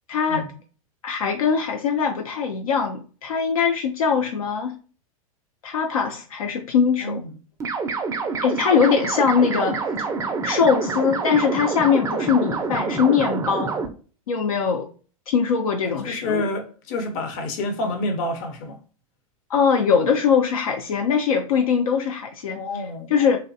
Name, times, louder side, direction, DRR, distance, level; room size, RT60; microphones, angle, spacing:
voice 1, 0.1-0.4 1.0-4.8 5.6-7.2 8.4-9.8 10.4-13.7 14.3-14.9 15.3-16.5 19.5-22.6 23.1-23.4, left 6 dB, 80° left, 0.4 m, -21 dB
voice 2, 7.0-7.3 15.8-18.8 22.5-23.1, left 2 dB, 45° left, 0.7 m, -28 dB
sound 1, 7.6-13.9, right 4 dB, 15° right, 0.4 m, -27 dB
2.5 x 2.1 x 2.5 m
hypercardioid pair, 100°, 18 cm